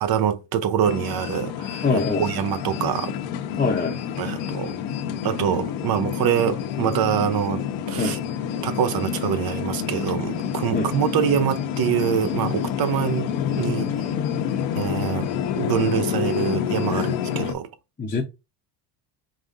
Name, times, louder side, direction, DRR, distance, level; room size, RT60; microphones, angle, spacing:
voice 1, 0.0-3.1 4.2-4.7 5.2-8.2 8.6-13.3 13.6-13.9 14.7-15.3 15.6-17.7, right 9 dB, 45° right, 0.8 m, -25 dB
sound 1, 0.8-17.5, left 9 dB, 65° left, 1.0 m, -28 dB
voice 2, 1.8-2.3 3.6-3.9 8.0-8.2 10.7-10.9 16.9-17.1 18.0-18.2, left 4 dB, 15° left, 0.8 m, -23 dB
5.2 x 3.5 x 2.6 m
supercardioid pair, 105°, 49 cm